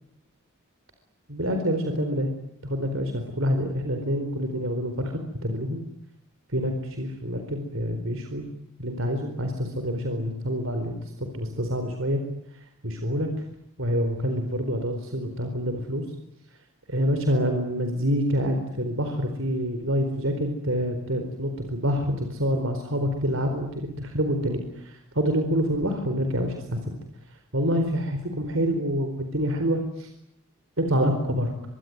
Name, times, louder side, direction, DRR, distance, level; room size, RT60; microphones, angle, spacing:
voice 1, 1.3-2.3 2.6-5.8 6.5-8.5 8.8-12.2 12.5-13.3 13.8-16.0 16.9-26.8 27.3-30.1 30.8-31.5, equal, 70° right, 5 dB, 4.3 m, -27 dB
24.5 x 24.5 x 9.4 m, 0.78 s
head